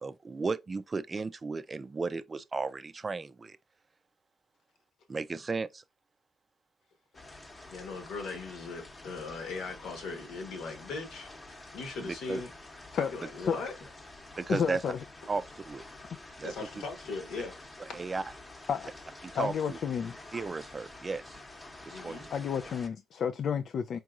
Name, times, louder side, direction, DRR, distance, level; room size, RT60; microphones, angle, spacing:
voice 1, 0.0-3.6 5.1-5.8 12.0-12.4 14.4-14.8 15.3-15.8 16.4-16.5 17.9-18.2 19.3-19.8 20.3-21.4 21.8-22.2, right 4 dB, 30° right, 0.4 m, -34 dB
sound 1, 7.1-22.9, left 2 dB, 25° left, 0.9 m, -49 dB
voice 2, 7.7-11.3 11.7-12.5 12.9-13.7 16.4-17.6 17.9-18.0 21.9-22.3, left 4 dB, 80° left, 1.2 m, -39 dB
voice 3, 14.5-15.0 18.7-18.9 19.3-20.2 22.3-24.0, left 7 dB, 60° left, 0.3 m, -31 dB
4.6 x 2.9 x 2.3 m
cardioid pair, 90°, 0 cm